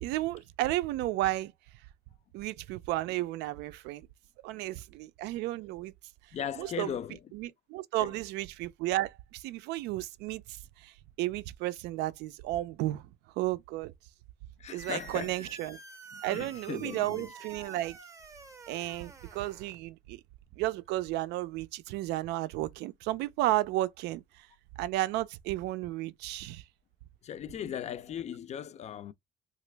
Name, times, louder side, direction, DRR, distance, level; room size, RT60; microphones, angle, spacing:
voice 1, 0.0-1.5 2.3-4.1 4.4-5.9 6.6-6.9 7.3-13.0 13.4-13.9 14.7-15.8 16.2-18.0 18.7-20.2 20.6-24.5 24.8-26.6, right 16 dB, 90° right, 0.4 m, -33 dB
voice 2, 6.3-7.2 8.0-8.2 14.6-15.4 16.1-17.3 27.2-29.1, left 9 dB, 40° left, 0.4 m, -38 dB
sound 1, 14.8-19.8, right 4 dB, 20° right, 0.6 m, -49 dB
3.0 x 2.4 x 3.2 m
cardioid pair, 110°, 17 cm